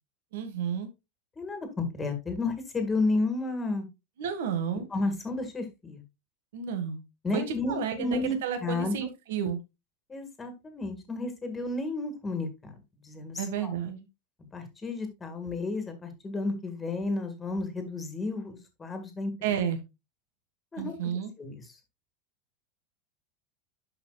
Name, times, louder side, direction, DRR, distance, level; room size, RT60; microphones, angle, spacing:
voice 1, 0.3-0.9 4.2-4.9 6.5-7.0 7.3-9.6 13.4-14.1 19.4-19.8 20.8-21.3, right 8 dB, 85° right, 7 dB, 1.7 m, -31 dB
voice 2, 1.4-3.9 4.9-6.0 7.2-9.1 10.1-12.7 13.0-13.7 14.5-19.3 20.7-20.9 21.4-21.5, left 3 dB, 10° left, 7 dB, 1.8 m, -32 dB
11.5 x 5.1 x 2.3 m, 0.23 s
supercardioid pair, 170°, 0 cm